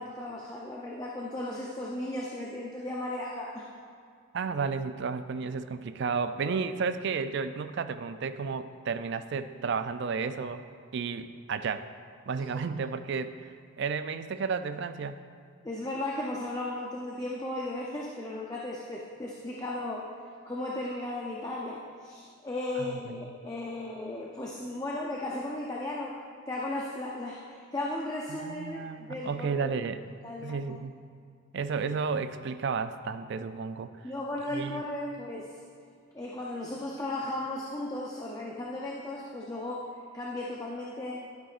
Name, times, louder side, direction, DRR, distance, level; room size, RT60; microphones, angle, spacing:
voice 1, 0.0-3.7 15.6-20.1 20.5-26.2 26.5-29.7 30.2-30.8 34.0-35.6 36.1-41.2, left 1 dB, 15° left, -3 dB, 0.6 m, -36 dB
voice 2, 4.3-10.6 10.9-11.9 12.3-13.4 13.8-15.2 22.8-23.2 28.3-30.0 30.4-31.0 31.5-33.9 34.5-34.8, right 5 dB, 55° right, 11 dB, 0.3 m, -32 dB
11.5 x 9.3 x 2.5 m, 2.2 s
head